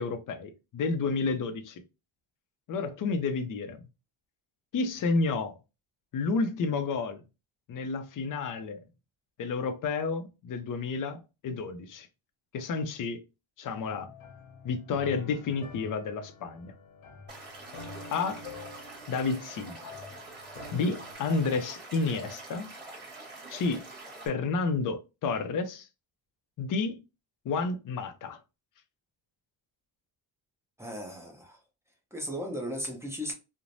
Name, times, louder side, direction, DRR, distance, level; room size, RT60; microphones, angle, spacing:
voice 1, 0.0-1.8 2.7-3.9 4.7-5.5 6.1-7.2 7.7-8.8 9.4-12.1 12.5-13.2 13.6-14.1 14.6-16.7 18.1-18.4 19.1-19.9 20.7-22.7 23.5-23.9 24.3-25.9 26.6-27.0 27.4-28.4, left 4 dB, 45° left, 0.5 m, -30 dB
sound 1, 13.7-21.1, left 3 dB, 80° left, 1.0 m, -47 dB
Stream / Liquid, 17.3-24.3, right 2 dB, 20° right, 1.3 m, -45 dB
voice 2, 30.8-31.6 32.1-33.3, equal, 5° right, 0.5 m, -36 dB
3.1 x 2.1 x 2.5 m
cardioid pair, 130°, 48 cm